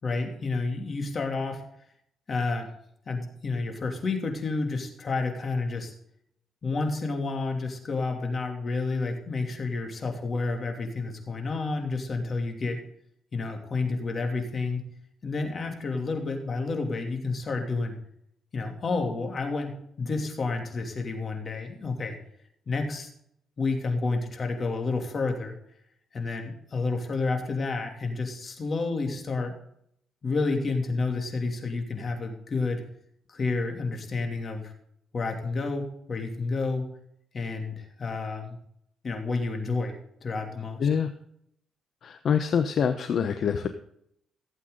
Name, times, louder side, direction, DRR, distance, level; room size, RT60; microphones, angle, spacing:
voice 1, 0.0-1.6 2.3-2.7 3.1-5.9 6.6-12.8 13.3-14.9 15.2-17.9 18.5-22.2 22.7-23.1 23.6-25.5 26.1-29.5 30.2-32.8 33.3-34.7 35.1-36.9 37.3-38.6 39.0-40.9, left 3 dB, 40° left, 3 dB, 2.8 m, -30 dB
voice 2, 42.0-43.7, left 7 dB, 60° left, 8 dB, 0.9 m, -25 dB
16.0 x 8.2 x 3.9 m, 0.72 s
cardioid pair, 90°, 0 cm